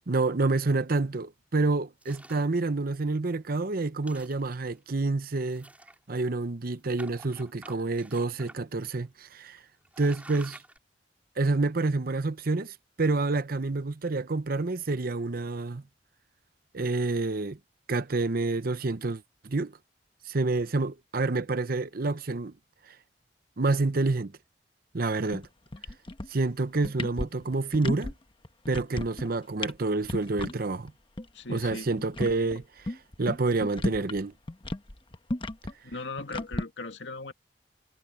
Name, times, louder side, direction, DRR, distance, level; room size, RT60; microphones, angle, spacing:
voice 1, 0.1-5.7 6.1-9.6 10.0-10.6 11.4-15.8 16.7-17.6 17.9-19.7 20.3-22.5 23.6-24.3 24.9-25.5 26.3-28.1 28.7-30.9 31.5-34.3, right 3 dB, 55° right, 0.8 m, -28 dB
sound 1, 2.0-2.5 3.1-3.2 3.5-3.6 4.0-4.8 5.5-6.3 7.0-8.6 8.8-8.9 9.5-9.6 9.8-10.8, right 1 dB, 10° right, 5.0 m, -49 dB
sound 2, 25.3-25.5 25.7-26.4 26.7-28.1 28.4-29.3 29.6-29.8 30.0-30.5 30.9-31.0 31.2-31.3 31.6-34.2 34.5-36.6, left 1 dB, 30° left, 1.1 m, -33 dB
voice 2, 31.3-31.9 35.8-37.3, left 3 dB, 85° left, 2.3 m, -38 dB
head